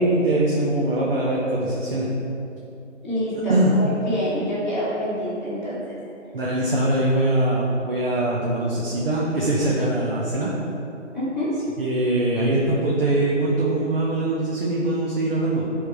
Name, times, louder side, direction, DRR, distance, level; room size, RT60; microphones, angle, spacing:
voice 1, 0.0-2.1 3.5-3.7 6.3-10.6 11.8-15.7, right 1 dB, 50° right, -6 dB, 1.3 m, -22 dB
voice 2, 3.0-5.8 11.1-11.5, equal, ahead, -20 dB, 1.6 m, -26 dB
11.0 x 3.8 x 4.8 m, 2.7 s
figure-of-eight pair, 160°, 38 cm